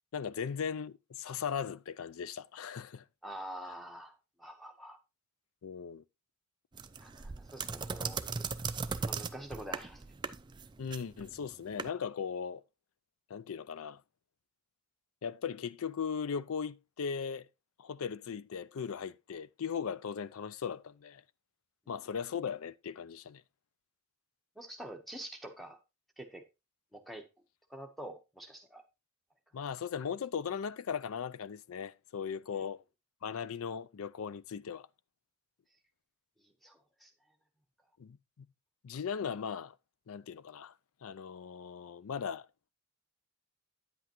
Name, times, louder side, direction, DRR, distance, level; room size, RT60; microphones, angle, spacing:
voice 1, 0.1-3.0 5.6-6.0 10.8-12.6 13.3-14.0 15.2-17.5 17.8-21.2 21.9-23.4 29.5-32.8 33.2-34.9 38.0-38.5 38.8-39.7 40.1-40.7 41.0-42.5, left 6 dB, 75° left, 0.4 m, -38 dB
voice 2, 3.2-5.0 7.0-8.5 9.0-10.0 24.6-25.8 26.2-26.4 26.9-27.3 27.7-28.8 32.5-32.6 36.4-37.1, right 1 dB, ahead, 1.1 m, -46 dB
sound 1, 6.7-11.9, right 5 dB, 20° right, 0.4 m, -38 dB
9.5 x 7.9 x 3.0 m
head